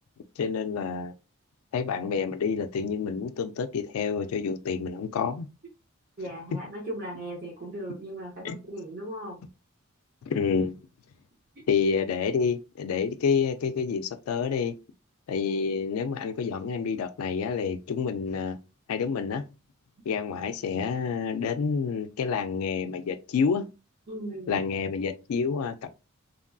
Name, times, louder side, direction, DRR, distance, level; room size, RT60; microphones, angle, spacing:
voice 1, 0.4-1.1 1.7-5.5 8.4-8.6 10.3-10.7 11.7-14.7 15.3-18.6 18.9-19.4 20.1-23.6 24.5-25.9, left 6 dB, 75° left, 0.3 m, -28 dB
voice 2, 6.2-9.4 24.1-24.6, right 1 dB, 45° right, 0.7 m, -37 dB
2.9 x 2.5 x 2.2 m
head